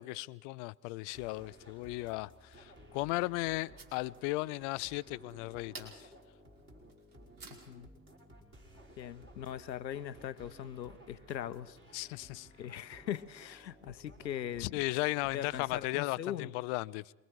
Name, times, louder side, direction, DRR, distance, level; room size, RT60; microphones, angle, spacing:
voice 1, 0.0-2.3 2.6-6.1 11.9-12.5 14.6-17.1, left 21 dB, 45° left, 0.6 m, -36 dB
sound 1, 1.1-15.9, equal, 25° right, 5.1 m, -57 dB
sound 2, 2.4-7.9, right 3 dB, 40° right, 5.1 m, -55 dB
voice 2, 7.5-7.9 9.0-12.2 12.6-14.8 15.3-16.5, left 10 dB, 85° left, 1.0 m, -41 dB
27.0 x 22.5 x 4.7 m
hypercardioid pair, 95°, 50 cm